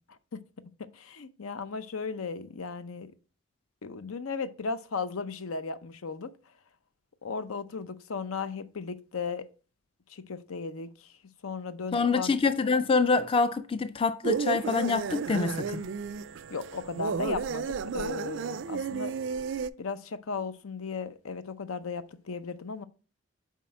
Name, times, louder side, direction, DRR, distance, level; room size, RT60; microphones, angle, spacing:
voice 1, 0.1-0.4 0.8-3.1 3.8-6.3 7.2-9.5 10.1-11.1 11.4-12.4 16.5-19.2 19.8-22.8, left 4 dB, 85° left, 0.6 m, -36 dB
voice 2, 11.9-15.8, left 4 dB, 25° left, 0.3 m, -26 dB
sound 1, 14.2-19.7, right 5 dB, 60° right, 0.3 m, -33 dB
7.4 x 4.7 x 4.2 m
head